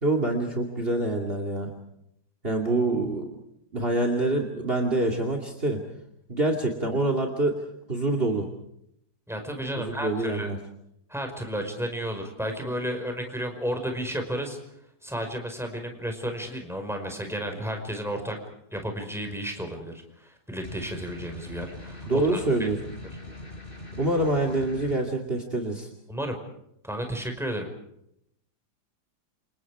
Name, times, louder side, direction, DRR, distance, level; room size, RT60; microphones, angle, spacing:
voice 1, 0.0-1.7 2.4-3.3 3.7-5.8 6.3-7.6 7.9-8.5 9.8-10.6 22.1-22.8 24.0-25.9, right 2 dB, 35° right, 4 dB, 2.8 m, -26 dB
voice 2, 9.3-10.5 11.1-14.6 15.0-18.4 18.7-19.9 20.2-22.4 26.1-26.4 26.8-27.7, equal, ahead, 4 dB, 5.1 m, -32 dB
sound 1, 20.6-25.0, left 1 dB, 30° left, 5.6 m, -42 dB
29.0 x 27.5 x 4.9 m, 0.77 s
omnidirectional pair, 1.8 m